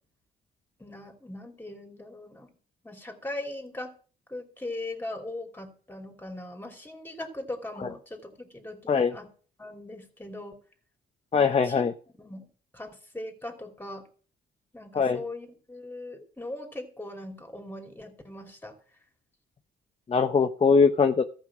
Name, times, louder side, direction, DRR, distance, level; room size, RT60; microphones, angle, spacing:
voice 1, 0.8-2.5 2.8-3.9 4.3-9.3 9.6-10.6 11.3-11.8 12.1-12.5 12.7-14.1 14.7-18.7, left 1 dB, 10° left, 4 dB, 2.9 m, -40 dB
voice 2, 11.3-11.9 14.9-15.2 20.1-21.2, left 5 dB, 30° left, 7 dB, 0.8 m, -21 dB
14.0 x 5.7 x 7.3 m, 0.42 s
cardioid pair, 90°, 20 cm